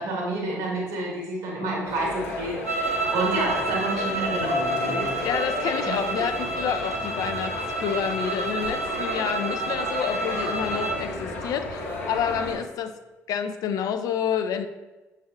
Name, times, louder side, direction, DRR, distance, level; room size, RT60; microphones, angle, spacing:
voice 1, 0.0-5.1 5.8-5.9, right 2 dB, 65° right, -2 dB, 1.5 m, -29 dB
sound 1, 1.8-12.6, left 2 dB, 75° left, 1.0 m, -33 dB
sound 2, 2.6-11.1, right 3 dB, 90° right, 0.3 m, -30 dB
voice 2, 5.2-7.6 7.8-12.9 13.3-14.7, left 8 dB, 50° left, 9 dB, 0.4 m, -28 dB
7.0 x 3.3 x 2.3 m, 1.1 s
figure-of-eight pair, 45°, 8 cm